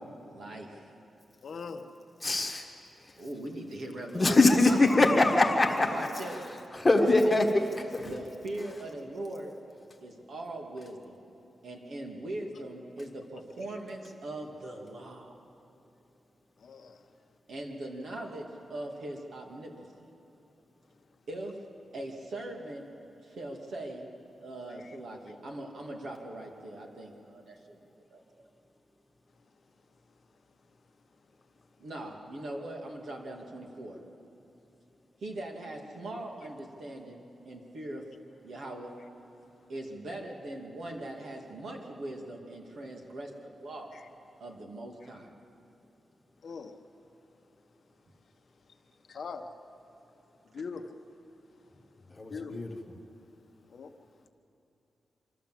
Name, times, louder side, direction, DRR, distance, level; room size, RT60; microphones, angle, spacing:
voice 1, 0.2-0.9 3.2-4.4 4.7-5.1 5.9-6.5 6.9-7.4 8.0-9.5 10.0-11.2 11.6-15.4 17.5-20.1 21.3-21.7 21.9-22.9 23.2-24.1 24.4-28.2 31.8-34.0 35.2-38.1 38.4-39.0 39.7-43.9 44.4-45.3, right 1 dB, 65° right, 0 dB, 2.4 m, -41 dB
voice 2, 1.4-1.8 16.6-17.0 46.4-46.7 49.1-49.4 50.5-51.0 52.3-52.5 53.7-53.9, left 5 dB, 55° left, 5 dB, 1.0 m, -40 dB
voice 3, 2.2-2.7 4.1-6.0 6.8-7.4 7.9-8.1 52.2-52.7, left 2 dB, 15° left, 2 dB, 1.5 m, -23 dB
25.0 x 13.5 x 7.6 m, 2.9 s
wide cardioid pair, 170°, 0 cm